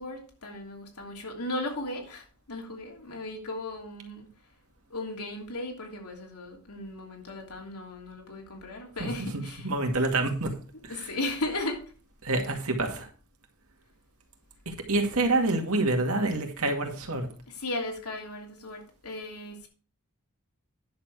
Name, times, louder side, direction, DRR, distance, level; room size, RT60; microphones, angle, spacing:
voice 1, 0.0-4.3 4.9-9.7 10.9-11.8 17.5-19.7, left 2 dB, 90° left, 1 dB, 3.1 m, -36 dB
voice 2, 9.0-10.6 10.8-11.1 12.2-13.1 14.7-17.3, right 2 dB, 70° right, 4 dB, 2.2 m, -27 dB
10.5 x 7.2 x 4.8 m, 0.39 s
head